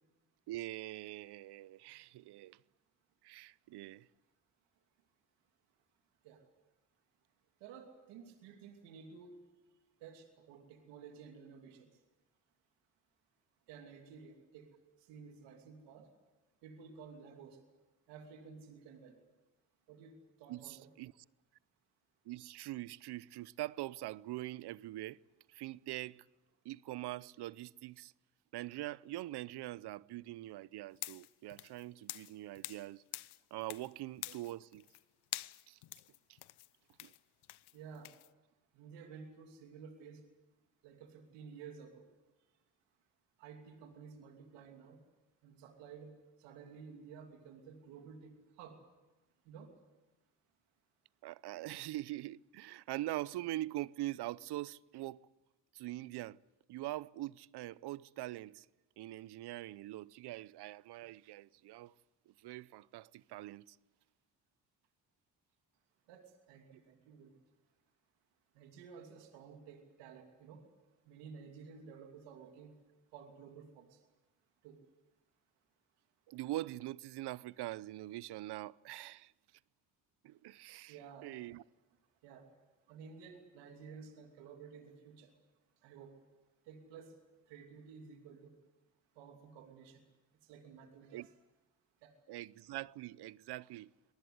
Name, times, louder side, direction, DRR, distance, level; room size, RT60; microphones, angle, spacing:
voice 1, 0.5-2.6 3.2-4.1 20.5-21.1 22.3-25.2 25.5-26.2 26.6-28.1 28.5-33.0 33.5-34.8 35.7-35.8 37.0-37.1 51.2-55.2 55.7-56.4 56.7-58.7 59.0-61.9 62.3-63.8 76.3-79.3 80.2-81.6 91.1-91.3 92.3-93.9, right 16 dB, 70° right, 0.7 m, -43 dB
voice 2, 7.6-9.4 10.0-11.9 13.7-16.1 16.6-17.6 18.1-19.2 19.9-20.9 37.7-38.1 38.7-40.3 40.8-42.1 43.4-45.0 45.4-48.8 49.4-49.8 66.1-67.4 68.5-70.7 71.0-72.8 73.1-74.0 74.6-74.8 80.9-81.4 82.2-82.6 82.9-85.3 85.8-86.2 86.6-87.2 87.5-88.6 89.1-90.0 90.4-91.3 92.0-92.1, right 6 dB, 90° right, 2.8 m, -53 dB
sound 1, 30.9-32.9 33.1-33.9 34.2-35.0 35.3-38.3, left 16 dB, 70° left, 0.8 m, -46 dB
25.0 x 19.5 x 8.1 m
supercardioid pair, 60°, 41 cm